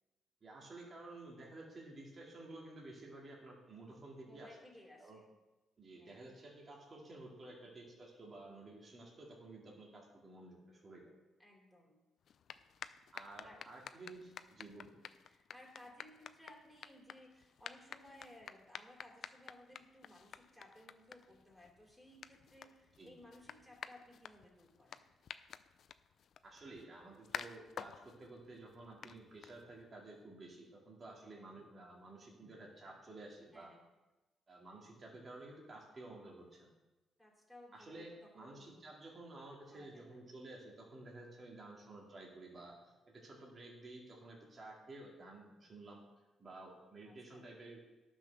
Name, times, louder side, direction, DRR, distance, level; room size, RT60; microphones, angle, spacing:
voice 1, 0.4-4.6 5.0-5.2 5.8-11.1 13.1-14.9 23.0-23.1 26.4-33.7 34.5-36.7 37.7-46.0 46.4-47.8, right 2 dB, 40° right, -2 dB, 2.3 m, -53 dB
voice 2, 4.2-5.2 6.0-6.3 7.6-7.8 11.4-12.0 13.4-13.7 15.3-25.1 31.2-31.5 33.5-33.9 37.2-38.8 39.7-40.2 47.0-47.5, left 1 dB, ahead, -1 dB, 3.0 m, -59 dB
sound 1, 12.2-30.0, left 8 dB, 60° left, 0.4 m, -52 dB
10.5 x 6.2 x 6.4 m, 1.1 s
cardioid pair, 90°, 0 cm